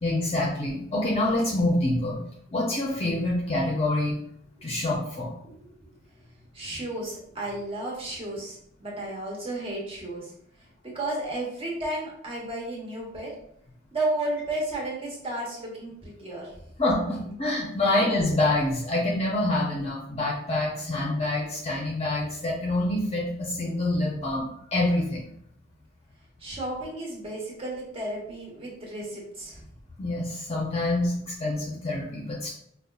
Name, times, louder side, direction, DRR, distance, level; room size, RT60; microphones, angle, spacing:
voice 1, 0.0-2.2 2.5-4.2 4.6-5.3 16.8-25.3 30.0-32.5, left 1 dB, 35° left, -3 dB, 0.6 m, -26 dB
voice 2, 6.5-10.3 10.8-13.3 13.9-16.5 17.0-17.4 17.8-17.9 26.4-29.6, right 1 dB, 30° right, -3 dB, 1.1 m, -33 dB
5.0 x 2.3 x 2.3 m, 0.70 s
head